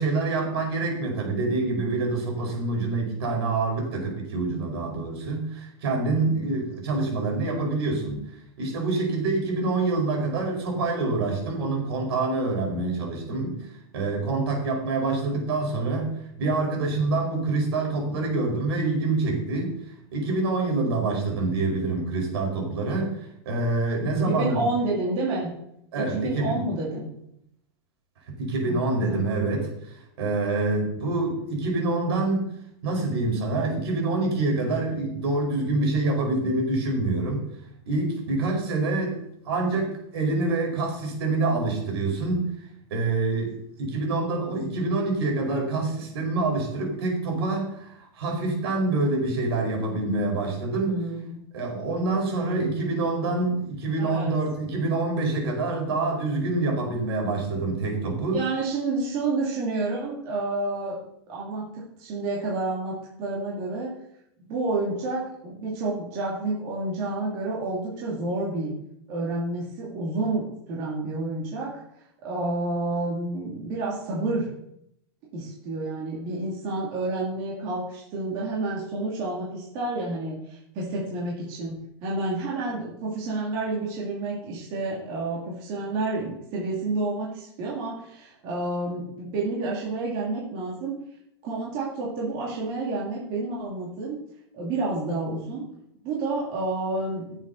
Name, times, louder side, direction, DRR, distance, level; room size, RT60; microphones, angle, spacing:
voice 1, 0.0-8.2 8.6-16.1 16.4-19.7 20.1-24.6 25.9-26.6 28.3-32.5 32.8-37.5 37.9-39.2 39.4-42.5 42.9-51.0 51.5-58.4, right 3 dB, 70° right, 0 dB, 4.8 m, -26 dB
voice 2, 24.3-25.5 25.9-27.1 28.7-29.3 50.8-51.4 54.0-54.3 58.3-61.0 61.3-63.9 64.5-68.7 69.1-71.7 72.2-74.5 75.3-91.0 91.4-94.2 94.5-95.6 96.0-97.2, right 2 dB, 30° right, -5 dB, 2.5 m, -29 dB
16.5 x 7.5 x 4.0 m, 0.76 s
supercardioid pair, 175°, 14 cm